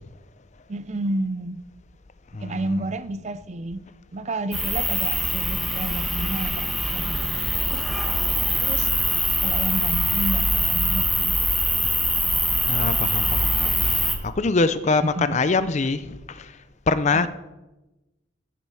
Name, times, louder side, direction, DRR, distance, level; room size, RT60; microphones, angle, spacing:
voice 1, 0.7-1.6 2.4-3.8 4.1-7.8 8.6-8.9 9.4-11.4 14.8-15.3 17.1-17.3, right 2 dB, 35° right, 13 dB, 0.5 m, -31 dB
voice 2, 2.3-2.8 12.7-16.6 16.9-17.3, left 3 dB, 35° left, 13 dB, 0.5 m, -24 dB
sound 1, 4.5-14.2, equal, ahead, 1.2 m, -23 dB
15.0 x 7.5 x 4.8 m, 1.1 s
head